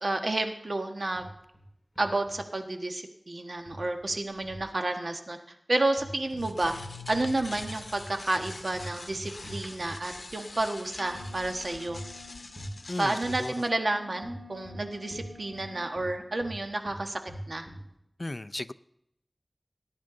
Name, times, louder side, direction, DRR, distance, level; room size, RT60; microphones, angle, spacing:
voice 1, 0.0-1.3 2.0-6.7 7.1-12.0 13.0-17.2 17.5-17.7, right 2 dB, 70° right, 1.4 m, -30 dB
sound 1, 1.2-1.6 2.0-2.4 3.7-4.7 5.9-6.9 7.1-10.2 11.1-11.3 11.9-12.2 12.6-12.8 13.2-13.4 14.2-15.7 15.9-17.9, equal, 5° left, 4.6 m, -43 dB
sound 2, 6.1-13.7, left 3 dB, 80° left, 0.9 m, -44 dB
sound 3, 11.0-13.2 13.8-16.6, left 4 dB, 50° right, 2.3 m, -52 dB
voice 2, 12.9-13.7 18.2-18.7, left 2 dB, 45° left, 0.4 m, -35 dB
18.5 x 10.5 x 3.8 m
wide cardioid pair, 55°, 0 cm